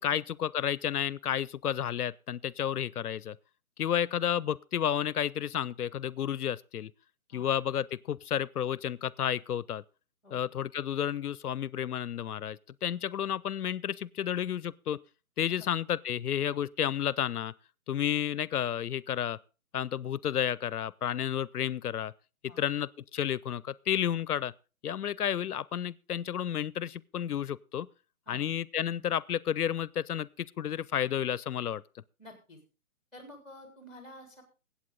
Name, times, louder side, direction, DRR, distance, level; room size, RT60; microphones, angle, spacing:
voice 1, 0.0-3.4 3.8-6.9 7.3-9.8 10.3-15.0 15.4-17.5 17.9-19.4 19.7-22.1 22.6-24.5 24.8-27.9 28.3-31.8, left 9 dB, 85° left, 0.6 m, -31 dB
voice 2, 32.2-32.6 33.1-34.4, left 1 dB, ahead, 3.5 m, -50 dB
20.5 x 8.4 x 3.8 m
hypercardioid pair, 155°, 44 cm